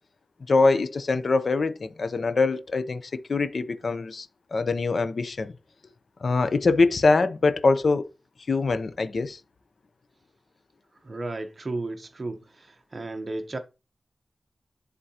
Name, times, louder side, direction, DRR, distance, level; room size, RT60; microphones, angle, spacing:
voice 1, 0.5-5.5 6.2-8.0 8.5-9.4, left 3 dB, 65° left, 0.6 m, -23 dB
voice 2, 11.0-13.6, right 2 dB, 40° right, 0.8 m, -34 dB
11.0 x 3.7 x 2.8 m
wide cardioid pair, 95°, 0 cm